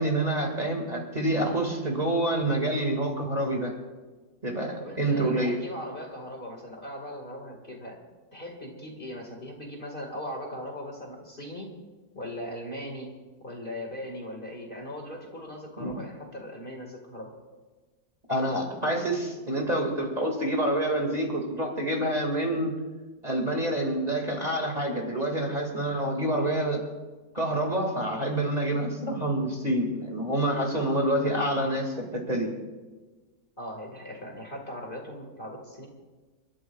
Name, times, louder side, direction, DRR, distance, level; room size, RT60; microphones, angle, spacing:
voice 1, 0.0-3.7 4.4-5.6 15.8-15.9 18.3-22.8 23.2-26.8 27.3-32.5, right 1 dB, 25° right, 1 dB, 2.1 m, -27 dB
voice 2, 4.8-8.0 8.3-11.7 12.2-13.1 13.4-17.3 33.6-35.9, equal, 30° left, 1 dB, 2.0 m, -39 dB
30.0 x 12.5 x 2.4 m, 1.3 s
omnidirectional pair, 1.9 m